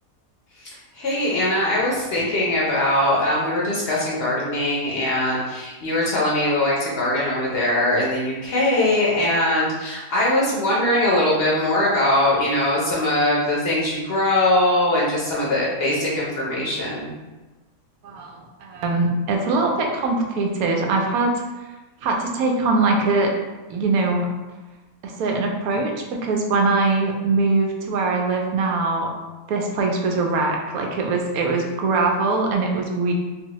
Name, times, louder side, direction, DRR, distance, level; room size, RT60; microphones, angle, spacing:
voice 1, 0.9-17.1, left 1 dB, 55° left, -5 dB, 0.8 m, -21 dB
voice 2, 18.0-21.3 22.0-23.3 23.7-24.3 25.0-25.9 26.2-29.1 29.5-33.1, right 3 dB, 90° right, 1 dB, 1.0 m, -22 dB
2.7 x 2.6 x 2.9 m, 1.1 s
omnidirectional pair, 1.5 m